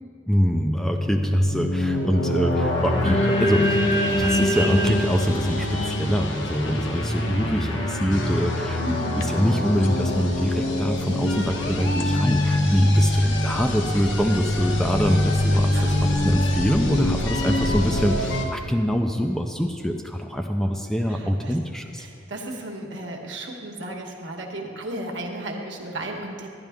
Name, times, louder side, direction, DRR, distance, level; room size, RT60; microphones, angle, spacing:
voice 1, 0.3-22.1, equal, ahead, 4 dB, 0.4 m, -25 dB
sound 1, 0.6-18.5, left 1 dB, 70° left, 1.1 m, -25 dB
sound 2, 3.0-7.4, left 1 dB, 35° left, 1.0 m, -24 dB
sound 3, 8.0-18.2, left 1 dB, 90° left, 0.8 m, -34 dB
voice 2, 8.8-9.2 15.7-16.0 21.1-21.5 22.0-26.5, right 1 dB, 65° right, 2 dB, 1.2 m, -34 dB
11.5 x 10.5 x 3.5 m, 2.3 s
head